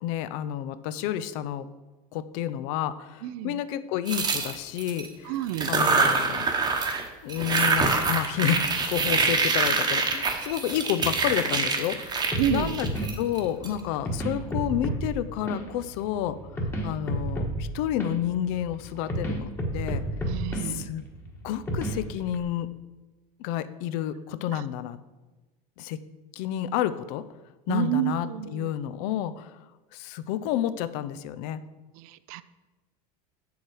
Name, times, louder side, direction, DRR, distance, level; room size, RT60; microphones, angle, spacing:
voice 1, 0.0-1.7 2.1-5.3 5.7-6.5 7.2-12.9 13.2-20.0 20.6-21.0 21.4-22.7 23.4-25.0 25.8-26.0 26.3-27.3 27.7-29.5 29.9-31.6, left 11 dB, 65° left, 14 dB, 0.5 m, -30 dB
voice 2, 3.2-3.6 5.2-5.7 12.4-12.8 20.3-20.9 24.5-24.6 27.7-28.7 31.9-32.4, right 13 dB, 70° right, 15 dB, 0.5 m, -29 dB
sound 1, 4.1-5.1 5.5-7.0 7.3-13.7, right 4 dB, 20° right, 1.0 m, -25 dB
sound 2, 12.3-22.4, right 1 dB, 10° left, 1.3 m, -32 dB
7.7 x 7.0 x 4.8 m, 1.2 s
supercardioid pair, 140°, 19 cm